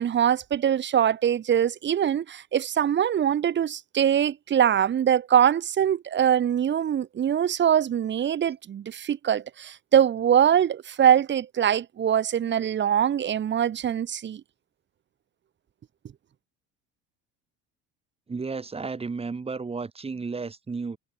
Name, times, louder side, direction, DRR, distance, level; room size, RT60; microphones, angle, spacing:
voice 1, 0.0-14.4, right 9 dB, 40° right, 1.7 m, -23 dB
voice 2, 18.3-21.0, right 4 dB, 20° right, 3.3 m, -33 dB
cardioid pair, 110°, 29 cm